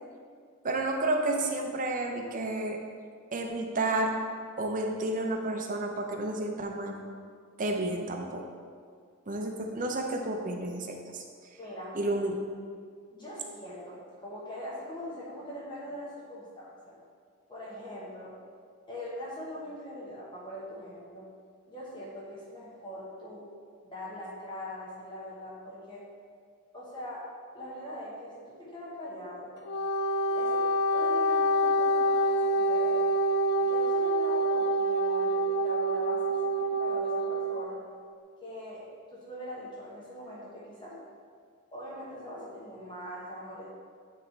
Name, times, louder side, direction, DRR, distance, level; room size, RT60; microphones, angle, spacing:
voice 1, 0.6-2.8 3.3-4.2 4.6-7.0 7.6-8.4 9.3-11.2 11.9-12.4, right 2 dB, 40° right, 2 dB, 0.7 m, -31 dB
voice 2, 11.6-12.0 13.1-17.0 17.5-18.3 18.9-21.3 21.7-23.5 23.8-26.1 26.7-27.3 27.5-29.5 30.3-33.1 33.5-37.8 38.4-41.0 41.7-43.7, left 1 dB, 20° left, -6 dB, 1.1 m, -42 dB
Wind instrument woodwind instrument, 29.6-37.6, right 1 dB, 50° left, 0.5 m, -26 dB
9.1 x 3.2 x 4.4 m, 2.1 s
head